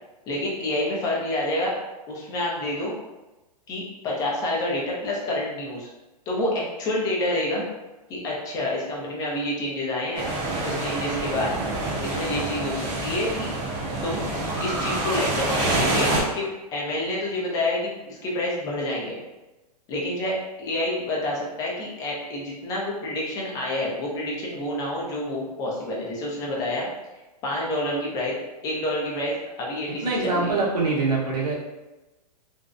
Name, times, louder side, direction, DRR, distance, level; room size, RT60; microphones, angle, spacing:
voice 1, 0.3-1.7 2.1-3.0 3.7-5.9 6.3-7.7 8.1-10.3 10.6-11.5 12.0-13.5 14.0-14.2 14.6-19.2 19.9-26.9 27.4-28.4 28.6-30.6, left 1 dB, 20° left, -3 dB, 0.4 m, -28 dB
sound 1, 10.2-16.2, right 2 dB, 40° right, 0.8 m, -27 dB
voice 2, 30.0-31.6, right 3 dB, 75° right, -4 dB, 0.9 m, -24 dB
2.5 x 2.0 x 2.4 m, 1.1 s
hypercardioid pair, 155°, 21 cm